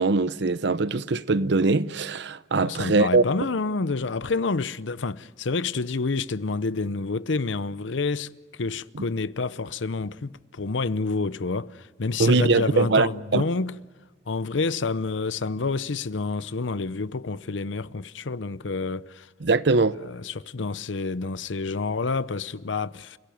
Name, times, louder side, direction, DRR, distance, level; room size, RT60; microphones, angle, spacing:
voice 1, 0.0-3.2 12.2-13.4 19.4-19.9, right 3 dB, 65° right, 0.8 m, -22 dB
voice 2, 2.5-13.8 14.3-19.3 20.0-23.2, left 4 dB, 80° left, 0.7 m, -28 dB
29.5 x 17.0 x 9.3 m
head